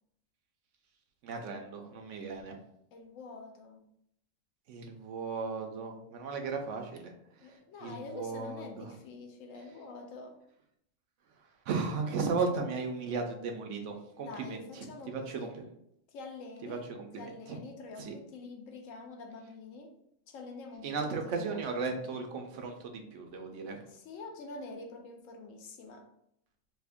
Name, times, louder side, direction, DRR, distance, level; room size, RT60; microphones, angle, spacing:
voice 1, 1.2-2.6 4.7-7.1 7.5-8.9 11.7-15.6 16.6-17.6 18.0-18.1 20.8-23.8, right 4 dB, 70° right, 3 dB, 0.9 m, -36 dB
voice 2, 2.9-3.8 7.4-10.4 14.2-15.6 16.1-16.9 17.2-19.9 20.3-21.6 23.9-26.1, left 3 dB, 80° left, 3 dB, 1.0 m, -46 dB
2.7 x 2.5 x 3.5 m, 0.74 s
omnidirectional pair, 1.4 m